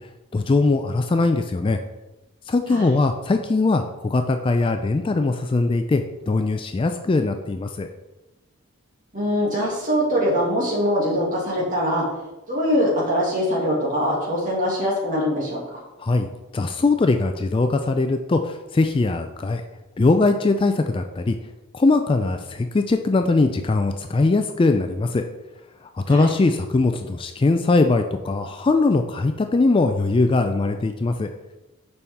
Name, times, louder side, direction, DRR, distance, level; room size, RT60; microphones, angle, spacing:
voice 1, 0.3-1.8 2.5-7.9 16.0-16.3 16.5-19.6 20.0-21.4 21.7-25.2 25.8-31.3, left 3 dB, 25° left, 6 dB, 0.3 m, -21 dB
voice 2, 9.1-12.0 12.5-15.8 26.1-26.3, equal, 40° right, -4 dB, 2.2 m, -23 dB
6.9 x 5.5 x 3.5 m, 1.0 s
head